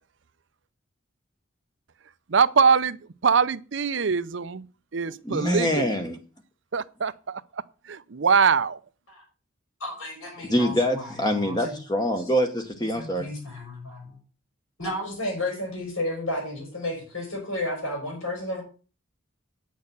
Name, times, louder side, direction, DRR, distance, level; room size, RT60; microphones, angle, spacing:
voice 1, 2.3-3.0 3.2-4.7 4.9-5.9 6.7-7.4 7.9-8.8, right 5 dB, 60° right, 0.6 m, -22 dB
voice 2, 5.2-6.2 10.5-13.3, equal, 20° left, 1.0 m, -25 dB
voice 3, 9.8-11.7 12.9-14.2 14.8-18.6, left 1 dB, 80° left, 5.0 m, -32 dB
9.3 x 6.6 x 6.9 m
head